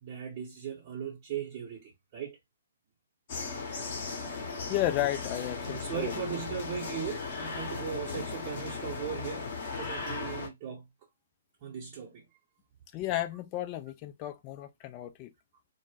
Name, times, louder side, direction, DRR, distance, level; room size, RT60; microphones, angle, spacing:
voice 1, 0.0-2.4 5.7-10.8 11.6-12.2, right 8 dB, 35° right, 0.8 m, -38 dB
sound 1, 3.3-10.5, left 4 dB, 45° left, 0.8 m, -37 dB
voice 2, 4.7-6.2 12.9-15.3, left 13 dB, 30° left, 0.3 m, -33 dB
2.1 x 2.1 x 3.2 m
figure-of-eight pair, 125°, 0 cm